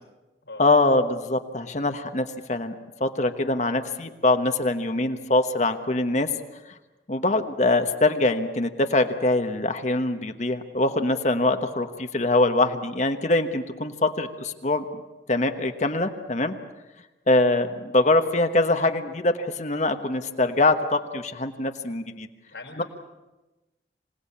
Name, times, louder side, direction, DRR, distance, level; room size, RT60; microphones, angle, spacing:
voice 1, 0.6-2.7 3.0-6.3 7.1-14.8 15.3-16.5 17.3-22.3 22.8-22.9, left 2 dB, 40° left, 7 dB, 1.2 m, -23 dB
voice 2, 22.5-22.8, left 2 dB, 85° left, 2 dB, 5.1 m, -40 dB
26.0 x 18.5 x 8.6 m, 1.1 s
head